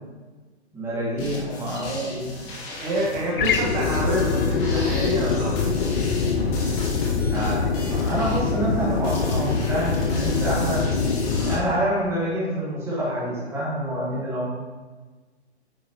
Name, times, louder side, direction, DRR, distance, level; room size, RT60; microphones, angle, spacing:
voice 1, 0.7-2.3 7.1-10.9 11.5-14.5, right 1 dB, 10° right, -8 dB, 1.9 m, -27 dB
sound 1, 1.2-11.5, left 2 dB, 30° left, 1.2 m, -36 dB
voice 2, 2.8-5.7 11.3-11.6, equal, 40° right, -4 dB, 1.7 m, -27 dB
sound 2, 3.4-11.6, left 5 dB, 50° left, 0.7 m, -24 dB
9.6 x 4.6 x 3.0 m, 1.3 s
hypercardioid pair, 135°, 34 cm